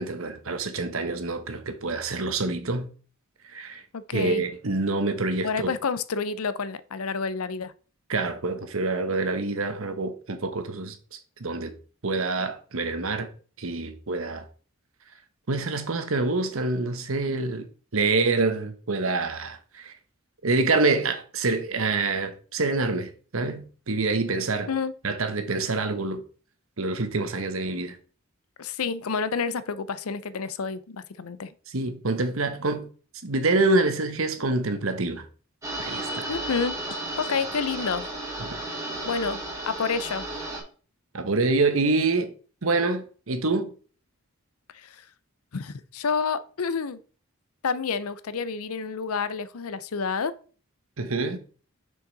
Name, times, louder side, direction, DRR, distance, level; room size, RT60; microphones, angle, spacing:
voice 1, 0.0-2.9 3.5-3.8 4.1-5.7 8.1-11.7 12.0-13.3 13.6-14.4 15.5-17.6 17.9-19.9 20.4-24.7 25.0-26.2 26.8-28.0 31.7-32.9 33.2-35.2 35.8-36.3 38.4-38.5 41.1-42.3 42.6-43.7 51.0-51.4, right 3 dB, 70° right, 1.0 m, -26 dB
voice 2, 3.9-4.4 5.4-7.7 24.7-24.9 28.6-31.5 36.3-38.0 39.0-39.4 39.7-40.3 44.7-45.0 45.5-47.0 47.6-50.3, left 5 dB, 85° left, 0.6 m, -29 dB
sound 1, 35.6-40.6, right 1 dB, 15° right, 2.0 m, -33 dB
6.4 x 5.4 x 4.0 m
head